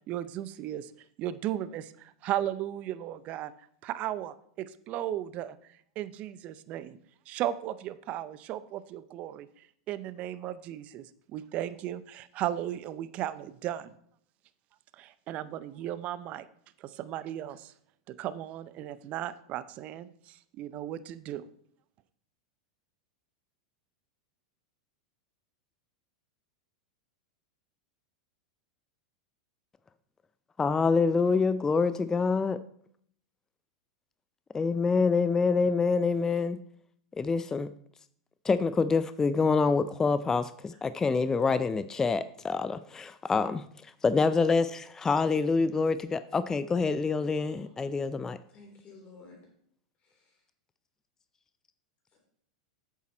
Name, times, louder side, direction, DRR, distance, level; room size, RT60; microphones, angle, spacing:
voice 1, 0.1-0.9 1.2-3.5 3.8-5.6 6.0-7.0 7.3-13.9 14.9-16.5 16.8-17.7 18.1-21.5, right 12 dB, 45° right, 0.6 m, -36 dB
voice 2, 30.6-32.6 34.5-36.6 37.2-37.7 38.4-43.6 44.0-48.4, left 4 dB, 15° left, 0.4 m, -26 dB
voice 3, 47.3-47.7 48.5-49.4 50.1-50.2, left 3 dB, 35° left, 3.8 m, -52 dB
8.4 x 7.2 x 4.4 m
hypercardioid pair, 100°, 3 cm